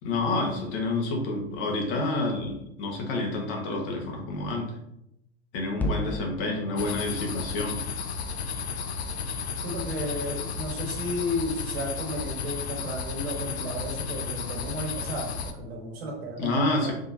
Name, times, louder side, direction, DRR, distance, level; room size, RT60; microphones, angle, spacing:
voice 1, 0.0-4.8 5.5-7.8 16.4-16.9, left 2 dB, 50° left, 1 dB, 1.5 m, -29 dB
sound 1, 5.7-10.1, left 1 dB, 5° left, 0.4 m, -37 dB
sound 2, 6.8-15.5, left 5 dB, 80° left, 0.6 m, -33 dB
voice 2, 9.6-16.9, equal, 65° right, 1 dB, 1.5 m, -33 dB
5.0 x 3.6 x 2.8 m, 0.79 s
hypercardioid pair, 90°, 32 cm